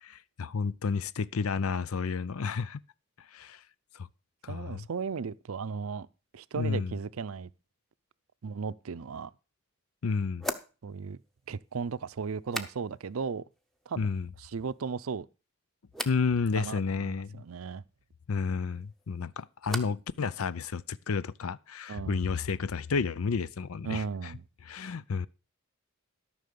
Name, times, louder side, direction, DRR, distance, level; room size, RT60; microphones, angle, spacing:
voice 1, 0.1-2.8 3.3-3.6 3.9-4.1 4.4-4.9 6.6-6.9 10.0-10.5 14.0-14.3 16.0-17.4 18.3-24.3 24.7-25.3, left 5 dB, 85° left, 0.5 m, -31 dB
voice 2, 4.5-6.1 6.3-7.5 8.4-9.3 10.8-11.2 11.5-13.4 13.9-14.1 14.4-15.3 16.6-17.8 21.9-22.3 23.8-24.4, right 5 dB, 80° right, 0.5 m, -36 dB
sound 1, 9.1-9.2 10.4-13.2 13.5-14.1 14.4-15.1 15.9-16.3 18.7-20.1 20.4-21.0, equal, ahead, 0.8 m, -42 dB
13.0 x 6.2 x 6.7 m
head